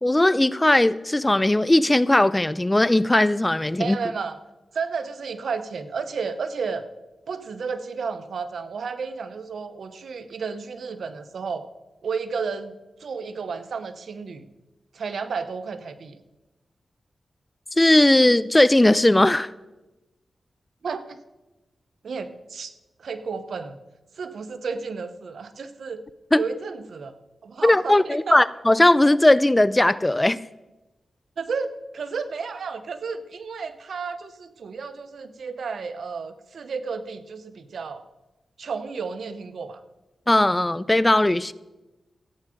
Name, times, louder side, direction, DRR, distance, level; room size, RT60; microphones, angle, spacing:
voice 1, 0.0-4.0 17.8-19.5 26.3-26.4 27.6-30.4 40.3-41.5, left 1 dB, 15° left, 18 dB, 0.4 m, -18 dB
voice 2, 3.8-4.4 4.7-6.8 7.3-11.7 12.0-14.4 14.9-16.2 20.8-21.2 22.0-22.7 23.0-23.8 24.2-26.0 26.4-27.1 27.4-28.4 31.4-38.0 38.6-39.8, right 5 dB, 75° right, 11 dB, 0.8 m, -32 dB
14.5 x 8.7 x 5.0 m, 1.1 s
cardioid pair, 70°, 0 cm